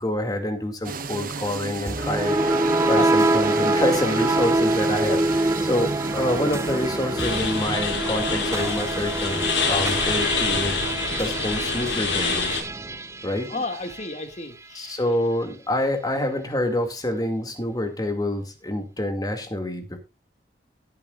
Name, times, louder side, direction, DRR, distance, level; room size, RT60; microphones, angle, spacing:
voice 1, 0.0-2.4 2.8-10.8 11.2-12.6 13.2-13.6 14.7-20.0, left 1 dB, 20° left, 6 dB, 2.1 m, -27 dB
sound 1, 0.8-10.7, right 3 dB, 50° right, 1.1 m, -33 dB
sound 2, 1.9-14.2, right 2 dB, 15° right, 0.5 m, -25 dB
voice 2, 2.9-3.3 13.5-15.0, left 3 dB, 40° left, 7 dB, 2.0 m, -32 dB
sound 3, 7.2-12.6, left 4 dB, 80° left, 5.1 m, -26 dB
17.5 x 9.6 x 2.4 m, 0.27 s
head